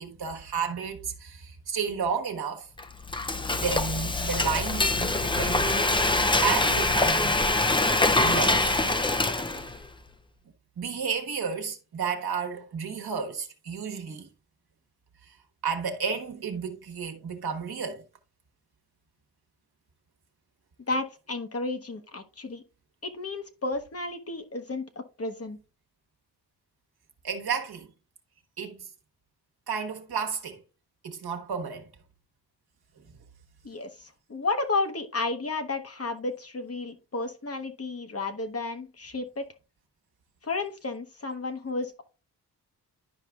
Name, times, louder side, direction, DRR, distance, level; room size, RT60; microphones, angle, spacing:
voice 1, 0.0-2.7 3.6-6.0 6.4-7.4 8.2-8.8 9.5-9.6 10.8-14.3 15.6-18.0 27.2-27.9 28.6-28.9 29.7-30.6 31.0-31.9, right 6 dB, 65° right, 1.2 m, -32 dB
Frying (food), 2.8-9.9, left 2 dB, 10° left, 0.5 m, -24 dB
voice 2, 20.9-22.6 23.0-25.6 33.6-39.4 40.4-42.0, left 3 dB, 35° left, 0.9 m, -32 dB
11.5 x 4.9 x 2.3 m
cardioid pair, 65°, 41 cm